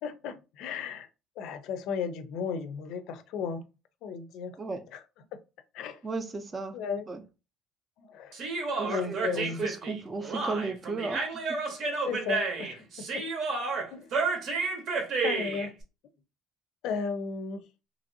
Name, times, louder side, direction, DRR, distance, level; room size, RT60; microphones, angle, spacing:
voice 1, 0.0-1.1 1.4-3.6 4.0-4.6 4.9-5.0 5.3-5.4 5.7-6.0 6.7-7.0 8.0-8.4 8.8-9.6 12.0-13.2 13.9-14.1 15.2-15.8 16.8-17.6, left 6 dB, 70° left, 0.4 m, -35 dB
voice 2, 6.0-6.8 7.1-7.2 8.8-11.2 11.5-11.6, right 3 dB, 20° right, 0.4 m, -34 dB
Human voice, 8.3-15.7, right 4 dB, 55° right, 0.8 m, -31 dB
2.9 x 2.6 x 2.6 m
cardioid pair, 145°, 0 cm